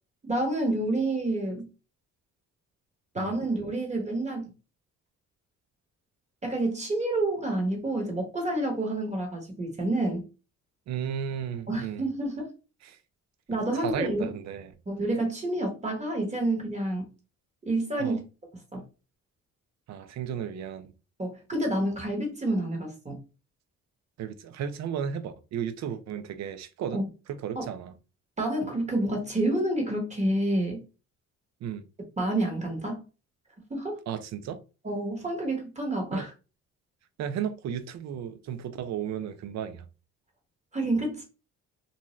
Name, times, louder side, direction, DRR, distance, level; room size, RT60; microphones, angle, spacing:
voice 1, 0.2-1.7 3.1-4.5 6.4-10.2 11.7-12.5 13.5-14.3 14.9-17.1 17.7-18.2 18.7-18.8 21.2-23.2 26.9-27.1 27.5-27.7 28.4-30.8 32.2-33.0 33.7-34.0 34.8-36.3 40.7-41.2, right 1 dB, 25° right, 1.2 m, -28 dB
voice 2, 10.9-12.1 12.9-13.0 13.8-14.7 18.0-18.2 19.9-20.9 24.2-27.0 27.3-27.9 31.6-31.9 34.1-34.6 36.1-36.3 37.2-39.8, right 8 dB, 60° right, 0.5 m, -34 dB
2.6 x 2.3 x 3.1 m
cardioid pair, 90°, 30 cm